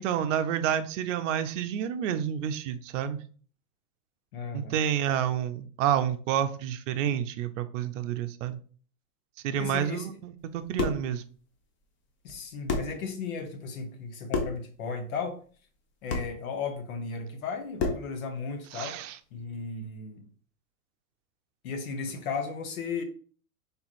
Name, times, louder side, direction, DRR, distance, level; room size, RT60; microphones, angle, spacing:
voice 1, 0.0-3.2 4.5-8.6 9.4-11.2 18.7-19.2, right 9 dB, 55° right, 0.6 m, -29 dB
voice 2, 4.3-4.8 9.5-10.1 12.2-15.4 16.0-19.0 19.3-20.2 21.6-23.0, left 5 dB, 70° left, 1.2 m, -35 dB
sound 1, 10.5-11.1 12.3-12.4 12.7-13.0 14.3-14.6 16.1-16.3 17.8-18.1, left 3 dB, 25° left, 0.8 m, -30 dB
3.5 x 2.9 x 4.1 m
hypercardioid pair, 120°, 44 cm